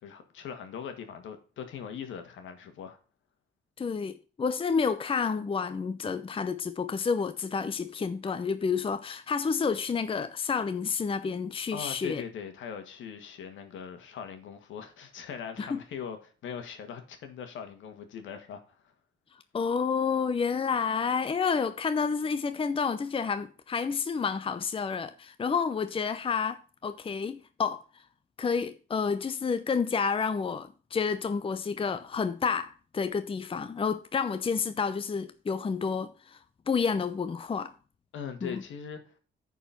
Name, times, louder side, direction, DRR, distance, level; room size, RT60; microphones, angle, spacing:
voice 1, 0.0-3.0 11.7-18.9 38.1-39.1, left 7 dB, 75° left, 1.9 m, -41 dB
voice 2, 3.8-12.2 15.6-15.8 19.5-27.8 28.4-36.4 36.7-37.7 38.4-38.6, left 5 dB, 25° left, 0.7 m, -30 dB
9.9 x 4.7 x 5.8 m
cardioid pair, 90°, 20 cm